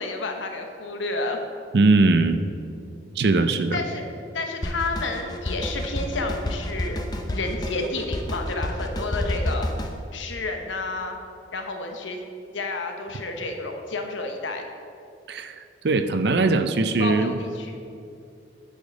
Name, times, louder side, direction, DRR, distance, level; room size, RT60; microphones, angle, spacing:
voice 1, 0.0-1.4 3.7-4.0 4.3-7.0 7.3-9.7 10.1-11.2 11.5-12.2 12.5-14.6 17.0-17.8, left 3 dB, 80° left, 4 dB, 1.0 m, -30 dB
voice 2, 1.7-2.4 3.2-3.8 15.3-15.6 15.8-17.3, right 3 dB, 60° right, 10 dB, 0.5 m, -20 dB
Drum kit, 4.6-10.0, left 1 dB, 20° left, 0.5 m, -29 dB
10.5 x 5.2 x 5.2 m, 2.5 s
head